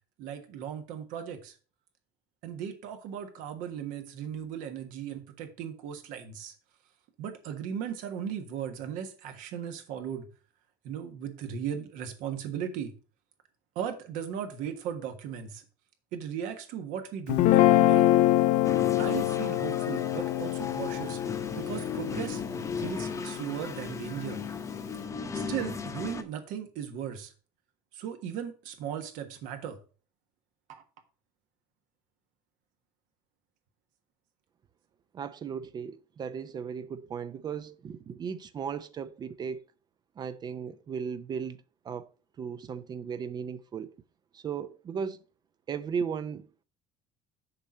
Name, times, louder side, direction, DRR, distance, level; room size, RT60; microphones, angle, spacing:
voice 1, 0.2-1.5 2.4-6.5 7.2-10.3 10.8-12.9 13.7-15.6 16.1-18.1 19.0-22.4 22.8-24.4 25.3-27.3 27.9-29.8 30.7-30.8, right 8 dB, 70° right, 1.4 m, -37 dB
Guitar, 17.3-23.6, left 14 dB, 65° left, 0.5 m, -25 dB
sound 1, 18.6-26.2, left 5 dB, 20° left, 0.8 m, -36 dB
voice 2, 35.1-39.6 40.2-42.1 42.4-43.9 44.3-45.2 45.7-46.5, right 6 dB, 30° right, 0.5 m, -36 dB
6.8 x 4.4 x 6.3 m
cardioid pair, 140°, 14 cm